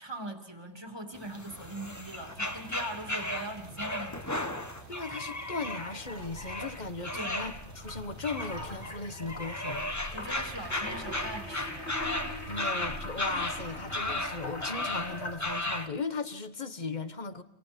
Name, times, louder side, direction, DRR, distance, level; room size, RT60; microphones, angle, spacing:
voice 1, 0.0-4.6 7.1-7.4 10.1-12.0, right 1 dB, 25° right, 2.7 m, -41 dB
sound 1, 1.1-15.9, left 1 dB, 15° left, 1.5 m, -36 dB
sound 2, 1.5-14.5, right 5 dB, 90° right, 1.8 m, -52 dB
voice 2, 4.9-9.9 12.5-17.4, left 3 dB, 45° left, 1.5 m, -37 dB
sound 3, 6.1-15.8, left 1 dB, 90° left, 4.1 m, -42 dB
29.5 x 27.0 x 5.3 m
omnidirectional pair, 1.1 m